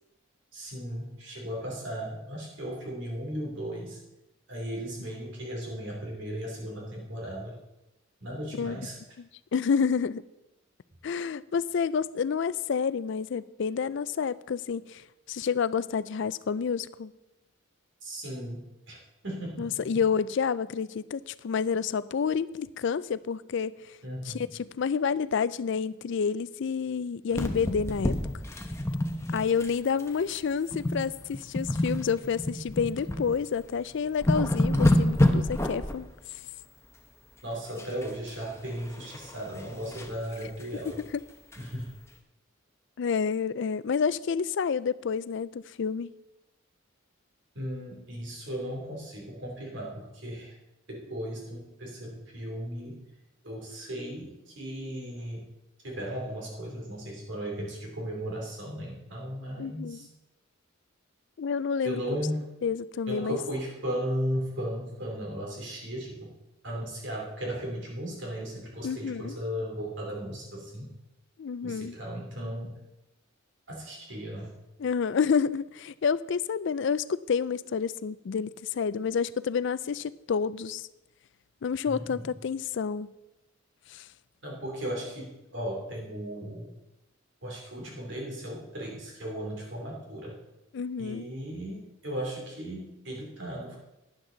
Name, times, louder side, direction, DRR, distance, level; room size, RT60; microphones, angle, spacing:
voice 1, 0.5-4.0 4.5-7.6 8.2-9.0 18.0-19.0 19.2-19.8 24.0-24.5 37.4-41.0 41.5-41.9 47.5-50.5 50.9-53.0 53.4-55.5 55.8-60.1 61.8-62.4 63.1-66.3 66.6-71.0 71.6-72.8 73.7-74.5 81.8-82.3 84.4-86.7 87.4-90.4 91.0-93.8, equal, 60° right, -1 dB, 2.9 m, -36 dB
voice 2, 9.5-10.2 11.0-17.1 19.6-23.9 24.3-28.2 29.3-36.1 43.0-46.1 59.6-60.0 61.4-62.0 62.6-63.4 68.8-69.3 71.4-72.0 74.8-80.9 81.6-83.1 83.9-84.1 90.7-91.3, left 6 dB, 60° left, 17 dB, 0.4 m, -29 dB
sound 1, 27.3-29.7 30.0-30.2 30.7-31.0 31.3-33.2 33.7-33.8 34.1-36.0 37.8-38.3 38.7-40.1 40.6-40.7 41.0-41.1 41.5-41.6, left 1 dB, 15° left, 0.9 m, -27 dB
12.0 x 10.5 x 3.9 m, 0.95 s
head